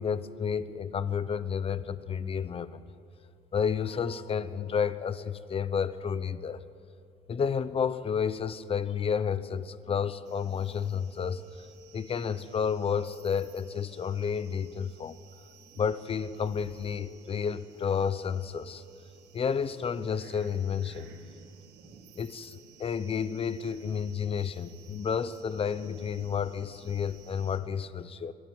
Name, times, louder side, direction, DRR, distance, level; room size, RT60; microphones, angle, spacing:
voice 1, 0.0-2.8 3.5-6.6 7.3-11.4 11.9-15.2 15.8-18.8 19.3-21.1 22.2-28.3, left 7 dB, 35° left, 14 dB, 0.9 m, -31 dB
sound 1, 10.2-27.6, right 7 dB, 85° right, 3.8 m, -57 dB
23.0 x 15.5 x 9.4 m, 2.6 s
cardioid pair, 110°, 17 cm